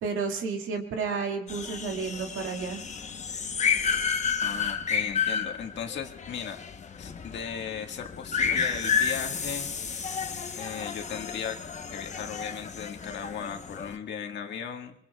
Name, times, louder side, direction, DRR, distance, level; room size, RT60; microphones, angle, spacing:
voice 1, 0.0-2.8, right 5 dB, 85° right, 2 dB, 2.1 m, -31 dB
sound 1, 1.5-14.0, left 6 dB, 35° left, 1.0 m, -31 dB
voice 2, 4.4-6.6 7.0-9.7 10.5-11.6 11.9-14.9, left 7 dB, 65° left, 3 dB, 1.7 m, -37 dB
25.0 x 22.5 x 2.4 m, 0.70 s
cardioid pair, 90°, 20 cm